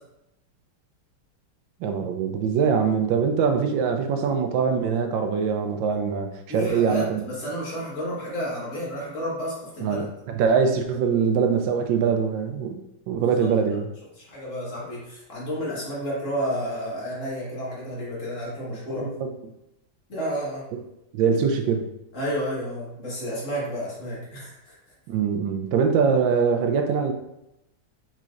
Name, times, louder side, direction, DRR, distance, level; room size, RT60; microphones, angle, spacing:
voice 1, 1.8-7.2 9.8-10.0 10.3-13.9 19.0-19.3 21.1-21.9 25.1-27.1, right 6 dB, 80° right, 5 dB, 1.3 m, -23 dB
voice 2, 6.5-10.1 13.2-13.5 14.2-19.1 20.1-20.6 22.1-24.7, equal, 40° left, -6 dB, 1.9 m, -31 dB
5.0 x 4.3 x 2.4 m, 0.86 s
omnidirectional pair, 2.1 m